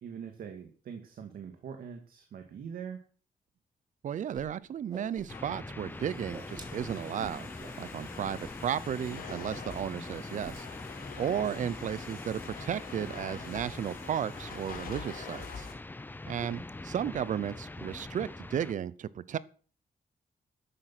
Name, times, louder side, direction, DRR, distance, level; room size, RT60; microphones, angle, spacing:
voice 1, 0.0-3.0, right 7 dB, 80° right, 5 dB, 2.1 m, -43 dB
voice 2, 4.0-7.5 7.8-10.7 11.2-15.7 16.3-19.4, right 9 dB, 60° right, 18 dB, 0.7 m, -34 dB
Whoosh swoosh swish, 4.3-4.4 4.7-5.6 5.9-7.8 8.2-8.5 8.7-8.9 9.3-9.8 10.0-10.6, right 3 dB, 30° right, 3.2 m, -48 dB
Domestic sounds home sounds, 5.0-15.7, left 6 dB, 85° left, 3.8 m, -47 dB
sound 1, 5.3-18.7, left 2 dB, 15° left, 0.7 m, -43 dB
13.0 x 10.0 x 6.1 m, 0.42 s
wide cardioid pair, 135°, 15 cm